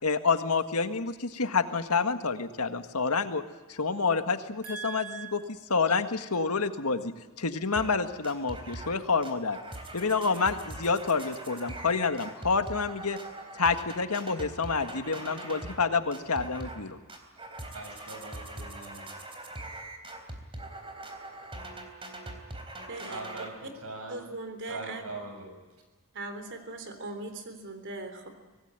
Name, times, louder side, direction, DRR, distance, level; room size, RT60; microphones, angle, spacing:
voice 1, 0.0-3.4 3.7-7.1 7.4-9.6 9.9-13.2 13.5-17.0, left 4 dB, 80° left, 1.7 m, -28 dB
voice 2, 4.6-5.3 17.7-19.1 23.1-24.2 24.7-25.5, right 3 dB, 75° right, 6.8 m, -41 dB
sound 1, 7.8-8.0 8.2-9.0 9.2-15.8 16.1-16.8 17.1-23.5, right 2 dB, 25° right, 3.7 m, -42 dB
voice 3, 22.9-23.2 24.1-25.0 26.1-28.3, right 2 dB, 55° right, 3.7 m, -39 dB
25.0 x 19.0 x 9.1 m
head